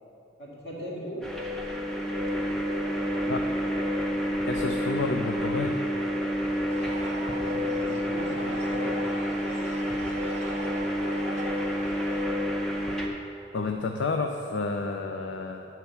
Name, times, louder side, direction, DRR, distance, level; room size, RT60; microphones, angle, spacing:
voice 1, 0.4-1.2 7.2-9.1, equal, 65° left, -6 dB, 2.2 m, -39 dB
sound 1, 1.2-13.1, equal, 5° left, 0.7 m, -29 dB
voice 2, 4.4-5.8 13.5-15.7, left 3 dB, 80° left, 4 dB, 0.5 m, -30 dB
sound 2, 6.7-12.2, right 1 dB, 35° right, 0.7 m, -42 dB
9.6 x 4.4 x 7.0 m, 2.7 s
head